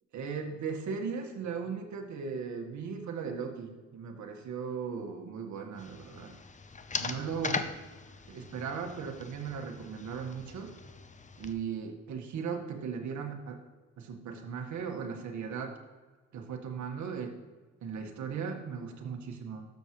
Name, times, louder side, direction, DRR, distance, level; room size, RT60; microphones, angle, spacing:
voice 1, 0.1-6.3 7.0-7.7 8.3-10.7 11.4-13.6 14.0-15.8 16.3-17.4 17.8-19.7, right 6 dB, 70° right, 3 dB, 1.7 m, -37 dB
sound 1, 5.8-11.5, left 5 dB, 25° left, 0.7 m, -40 dB
12.5 x 7.4 x 3.2 m, 1.3 s
cardioid pair, 90°, 30 cm